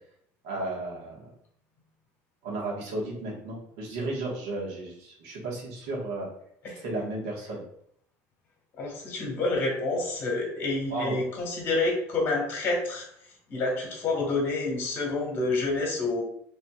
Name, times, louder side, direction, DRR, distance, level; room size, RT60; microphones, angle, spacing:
voice 1, 0.4-1.3 2.4-6.3 6.8-7.6 10.9-11.2, right 2 dB, 85° right, -3 dB, 1.5 m, -34 dB
voice 2, 8.8-13.1 13.5-16.2, left 2 dB, 35° left, -1 dB, 1.5 m, -28 dB
4.2 x 3.2 x 2.4 m, 0.68 s
cardioid pair, 145°, 6 cm